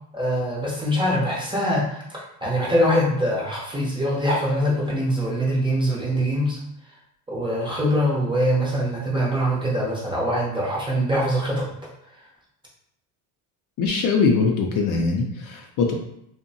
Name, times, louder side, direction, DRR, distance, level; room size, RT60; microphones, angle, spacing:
voice 1, 0.1-6.6 7.3-11.7, equal, 10° right, -5 dB, 0.5 m, -23 dB
voice 2, 13.8-15.9, left 4 dB, 50° left, 1 dB, 0.5 m, -22 dB
2.6 x 2.1 x 2.6 m, 0.76 s
cardioid pair, 125°, 45 cm